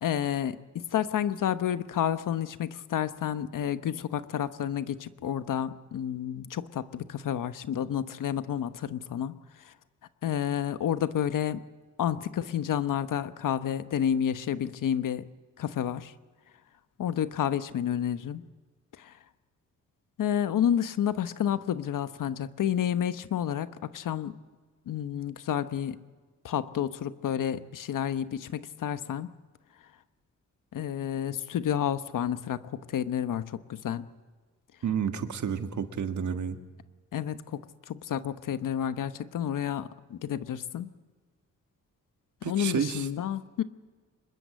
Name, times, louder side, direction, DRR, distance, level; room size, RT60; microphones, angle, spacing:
voice 1, 0.0-9.3 9.6-9.7 10.2-11.6 12.0-15.3 15.6-16.1 17.0-18.4 19.0-19.1 20.2-24.3 24.9-26.0 26.4-29.3 30.7-34.1 37.1-37.6 37.9-40.9 42.4-43.6, left 9 dB, 80° left, 12 dB, 1.1 m, -30 dB
voice 2, 34.8-36.6 42.4-43.1, right 7 dB, 65° right, 8 dB, 1.8 m, -30 dB
25.5 x 21.5 x 7.7 m, 1.4 s
cardioid pair, 95°, 32 cm